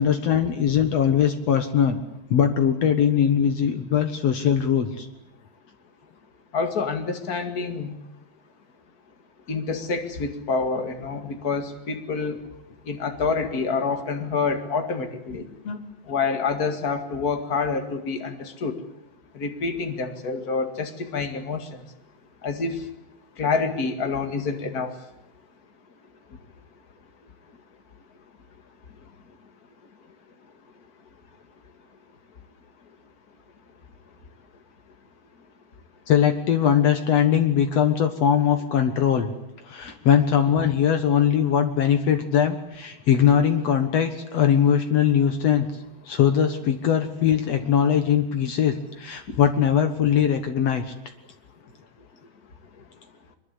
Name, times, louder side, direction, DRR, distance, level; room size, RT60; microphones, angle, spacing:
voice 1, 0.0-2.0 2.3-5.1 15.6-15.8 36.1-39.3 39.7-45.7 46.0-50.9, left 8 dB, 80° left, 7 dB, 1.4 m, -21 dB
voice 2, 6.5-7.9 9.5-12.4 12.9-15.4 16.1-18.8 19.3-21.8 22.4-22.9 23.4-24.9 49.3-49.4, left 4 dB, 45° left, 6 dB, 1.1 m, -27 dB
23.5 x 22.5 x 8.3 m, 0.84 s
omnidirectional pair, 5.1 m